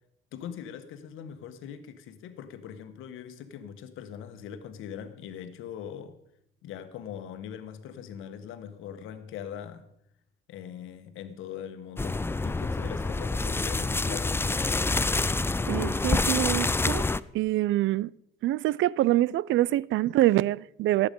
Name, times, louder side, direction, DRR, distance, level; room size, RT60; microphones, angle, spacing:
voice 1, 0.3-6.2 6.6-9.9 10.5-14.6, left 8 dB, 90° left, 1.3 m, -41 dB
sound 1, 12.0-17.2, left 3 dB, 10° left, 0.4 m, -27 dB
voice 2, 15.7-17.1 17.3-18.1 18.4-21.1, right 15 dB, 75° right, 0.4 m, -25 dB
17.0 x 8.1 x 5.3 m
cardioid pair, 90°, 20 cm